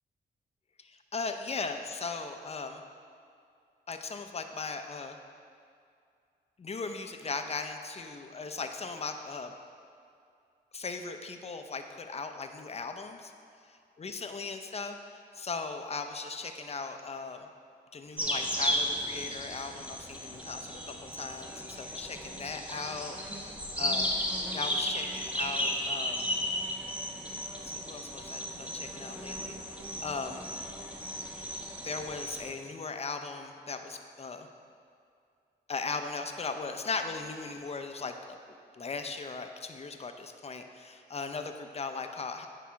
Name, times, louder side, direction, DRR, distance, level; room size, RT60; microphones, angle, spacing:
voice 1, 0.8-2.8 3.9-5.2 6.6-9.5 10.7-13.3 14.0-15.0 15.4-17.4 17.9-24.1 24.5-26.3 27.6-29.6 30.0-30.4 31.8-34.5 35.7-38.4 38.8-42.5, left 4 dB, 35° left, 6 dB, 0.7 m, -38 dB
sound 1, 18.2-32.5, equal, 5° right, 1.2 m, -35 dB
9.4 x 5.0 x 5.7 m, 2.4 s
cardioid pair, 90°, 18 cm